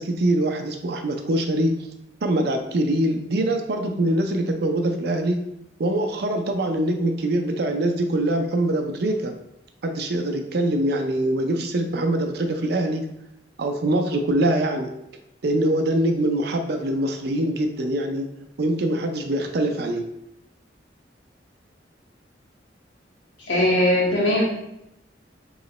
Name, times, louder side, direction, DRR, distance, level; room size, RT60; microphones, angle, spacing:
voice 1, 0.0-1.8 2.2-5.4 5.8-9.3 9.8-13.0 13.6-14.9 15.4-18.3 18.6-20.1, right 1 dB, 60° right, 5 dB, 0.5 m, -23 dB
voice 2, 23.4-24.4, left 1 dB, 80° left, -5 dB, 1.5 m, -20 dB
3.1 x 2.8 x 4.1 m, 0.83 s
head